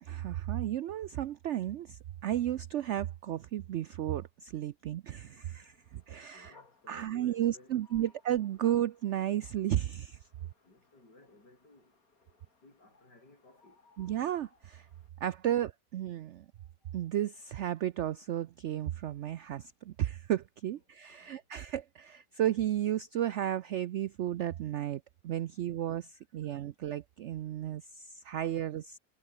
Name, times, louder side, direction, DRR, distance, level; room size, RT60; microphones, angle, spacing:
voice 1, 0.0-6.6 6.9-10.2 14.0-14.9 15.2-16.5 16.9-29.0, right 12 dB, 85° right, 0.6 m, -33 dB
sound 1, 5.1-15.1, left 4 dB, 55° left, 3.5 m, -65 dB
voice 2, 6.1-8.1 10.4-13.8 15.4-15.6 16.4-17.1 21.1-21.5 27.4-27.5, left 2 dB, 80° left, 8.1 m, -60 dB
omnidirectional pair, 1.8 m